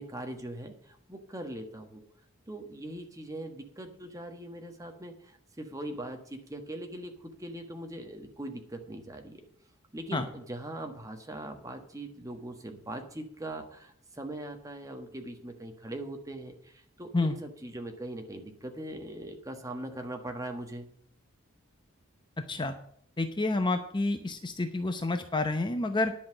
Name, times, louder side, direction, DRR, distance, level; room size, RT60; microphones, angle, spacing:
voice 1, 0.0-2.0 2.5-9.5 9.9-20.9, right 1 dB, 15° right, 5 dB, 1.4 m, -41 dB
voice 2, 23.2-26.1, left 2 dB, 20° left, 7 dB, 0.7 m, -29 dB
10.5 x 5.8 x 8.6 m, 0.63 s
head